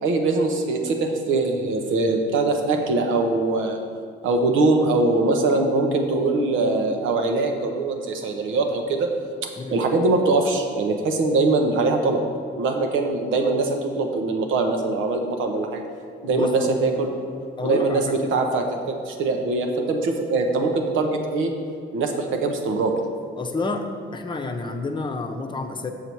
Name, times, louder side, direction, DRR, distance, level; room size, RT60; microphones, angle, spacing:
voice 1, 0.0-3.8 4.2-9.1 9.7-12.2 12.6-15.8 16.2-17.1 17.6-18.0 18.3-21.5 21.9-22.9, right 3 dB, 85° right, 3 dB, 1.0 m, -22 dB
voice 2, 16.3-16.7 17.6-18.2 23.3-25.9, left 3 dB, 25° left, 4 dB, 0.8 m, -29 dB
7.0 x 6.8 x 4.6 m, 2.2 s
cardioid pair, 90°, 20 cm